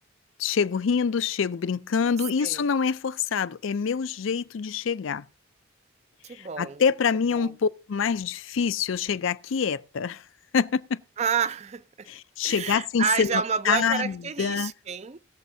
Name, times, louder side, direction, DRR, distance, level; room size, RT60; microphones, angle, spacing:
voice 1, 0.4-5.2 6.4-10.2 10.5-11.0 12.1-14.7, left 6 dB, 75° left, 0.4 m, -26 dB
voice 2, 6.2-6.8 7.3-7.5 11.2-12.1 12.4-15.2, right 7 dB, 35° right, 0.4 m, -29 dB
21.5 x 7.2 x 2.7 m
head